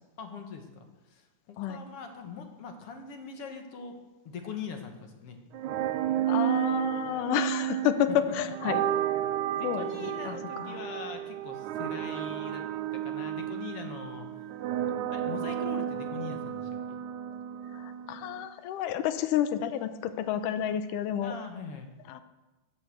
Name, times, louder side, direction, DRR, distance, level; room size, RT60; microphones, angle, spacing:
voice 1, 0.2-4.0 4.3-5.4 8.1-8.3 9.6-12.6 12.9-14.5 15.1-17.0 21.2-21.9, left 5 dB, 50° left, 5 dB, 2.2 m, -42 dB
sound 1, 5.5-18.5, right 11 dB, 70° right, 2.2 m, -32 dB
voice 2, 6.3-8.8 9.6-10.8 17.7-21.4 22.1-22.2, left 10 dB, 85° left, 10 dB, 2.3 m, -30 dB
15.0 x 8.1 x 7.9 m, 1.1 s
omnidirectional pair, 3.7 m